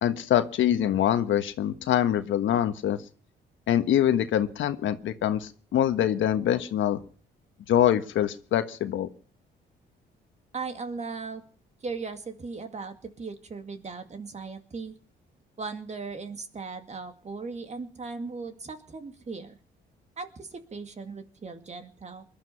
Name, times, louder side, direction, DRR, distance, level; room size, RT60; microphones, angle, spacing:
voice 1, 0.0-3.0 3.7-7.0 7.7-9.1, left 10 dB, 75° left, 10 dB, 1.4 m, -24 dB
voice 2, 10.5-11.4 11.8-15.0 15.6-19.6 20.2-22.2, right 4 dB, 35° right, 7 dB, 2.2 m, -38 dB
21.0 x 12.0 x 5.8 m, 0.43 s
cardioid pair, 90°, 20 cm